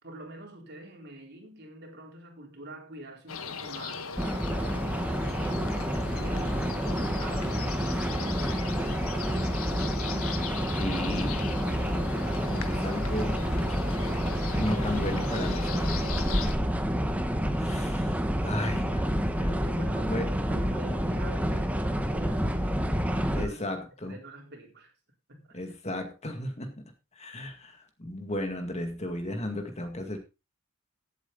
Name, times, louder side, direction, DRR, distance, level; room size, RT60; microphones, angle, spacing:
voice 1, 0.0-4.1 6.2-7.7 8.1-10.0 11.3-11.6 16.4-17.0 19.6-23.7 24.1-24.9 25.3-25.6, right 1 dB, 50° right, 4.0 m, -46 dB
sound 1, 3.3-16.5, left 5 dB, 80° left, 1.4 m, -39 dB
sound 2, 4.2-23.5, equal, 5° right, 1.2 m, -29 dB
voice 2, 10.8-11.4 12.5-13.4 13.7-13.8 14.5-16.1 17.5-19.7 20.0-20.3 23.4-24.2 25.5-26.9 27.1-30.2, left 1 dB, 30° left, 2.1 m, -34 dB
16.0 x 7.9 x 3.9 m
head